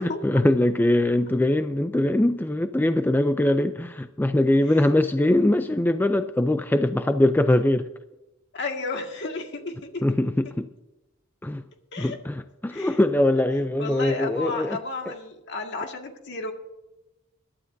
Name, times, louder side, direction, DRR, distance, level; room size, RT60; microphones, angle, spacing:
voice 1, 0.0-7.9 10.0-10.7 11.4-11.6 12.0-14.8, left 1 dB, 10° left, 0.4 m, -22 dB
voice 2, 8.5-10.1 11.9-12.2 12.7-13.0 13.8-16.5, left 3 dB, 60° left, 1.9 m, -33 dB
21.5 x 11.5 x 2.7 m
head